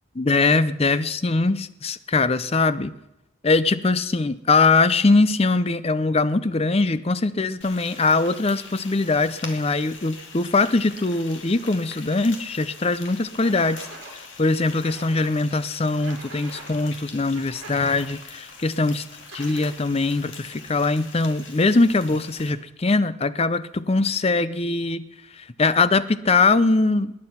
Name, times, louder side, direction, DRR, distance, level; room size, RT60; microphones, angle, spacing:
voice 1, 0.2-2.9 3.4-13.9 14.4-19.0 19.3-25.0 25.4-27.1, left 3 dB, 30° left, 14 dB, 0.6 m, -21 dB
Frying (food), 7.6-22.5, left 4 dB, 60° left, 2.2 m, -43 dB
sound 1, 12.1-12.2 13.4-14.1 14.8-15.3 16.0-16.8 17.3-18.0 19.2-20.0, right 2 dB, 55° right, 4.9 m, -42 dB
20.0 x 9.9 x 5.8 m, 0.91 s
head